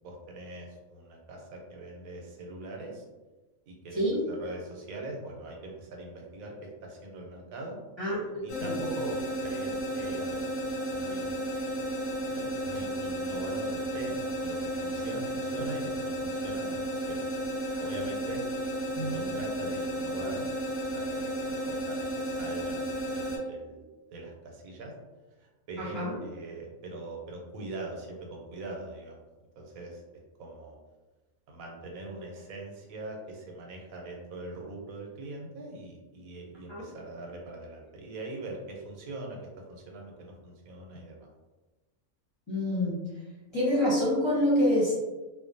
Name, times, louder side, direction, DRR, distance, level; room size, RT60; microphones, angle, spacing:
voice 1, 0.0-3.0 3.7-4.0 4.3-7.8 8.4-10.5 10.9-11.5 12.3-17.2 17.5-18.4 19.0-20.5 20.9-23.8 24.1-24.9 25.4-29.2 29.6-30.0 30.4-30.8 31.5-39.4 39.7-41.2, right 2 dB, 85° right, 0 dB, 1.0 m, -42 dB
sound 1, 8.5-23.4, right 1 dB, 65° left, 0.7 m, -33 dB
voice 2, 25.8-26.2 36.7-36.8 42.5-42.9 43.5-44.9, left 1 dB, 25° left, -9 dB, 0.6 m, -26 dB
2.5 x 2.0 x 2.5 m, 1.2 s
omnidirectional pair, 1.4 m